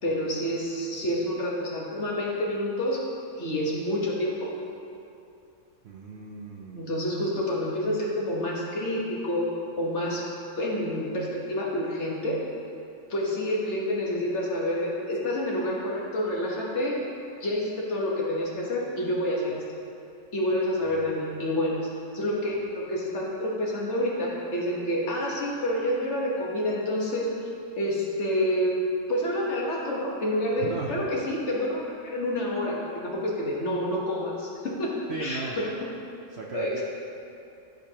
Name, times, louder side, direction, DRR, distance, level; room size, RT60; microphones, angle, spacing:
voice 1, 0.0-3.0 3.4-4.5 6.7-9.5 9.8-10.2 10.6-12.4 13.1-17.0 17.4-19.6 20.3-21.8 22.1-27.3 27.7-28.8 29.1-34.9 35.2-35.7 36.5-36.8, left 1 dB, 55° left, -4 dB, 1.5 m, -28 dB
voice 2, 5.8-6.9 20.8-21.1 30.6-31.0 35.1-35.6 36.3-36.8, right 4 dB, 60° right, -1 dB, 0.8 m, -37 dB
13.5 x 5.1 x 2.9 m, 2.6 s
omnidirectional pair, 1.5 m